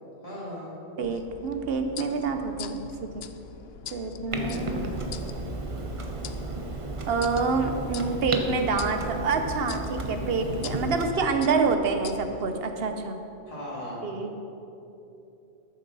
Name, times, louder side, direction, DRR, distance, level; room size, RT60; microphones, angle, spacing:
voice 1, 0.2-0.7 4.3-5.2 13.5-14.0, equal, 30° left, -7 dB, 2.4 m, -38 dB
sound 1, 1.0-12.7, left 7 dB, 70° left, 0.8 m, -43 dB
voice 2, 1.0-3.2 3.9-4.7 7.1-13.2 14.0-14.4, right 4 dB, 65° right, 6 dB, 1.0 m, -27 dB
Clock, 4.3-11.1, right 2 dB, 35° right, 0.7 m, -33 dB
13.0 x 7.3 x 4.1 m, 2.9 s
omnidirectional pair, 1.1 m